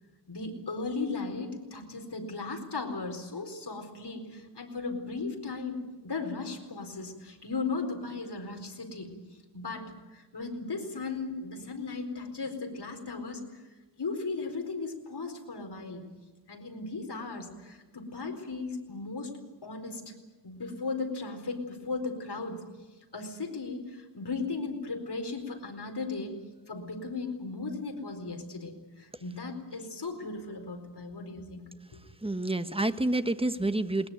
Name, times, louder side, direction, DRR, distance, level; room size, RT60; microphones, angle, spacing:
voice 1, 0.3-9.2 9.5-13.6 14.0-16.1 16.5-19.3 19.6-20.1 20.4-22.7 23.1-26.4 26.7-31.6 31.9-32.0, left 3 dB, 65° left, 4 dB, 4.4 m, -36 dB
voice 2, 32.2-34.1, right 2 dB, 15° right, 10 dB, 1.2 m, -28 dB
21.0 x 20.5 x 9.4 m, 1.2 s
wide cardioid pair, 75°, 43 cm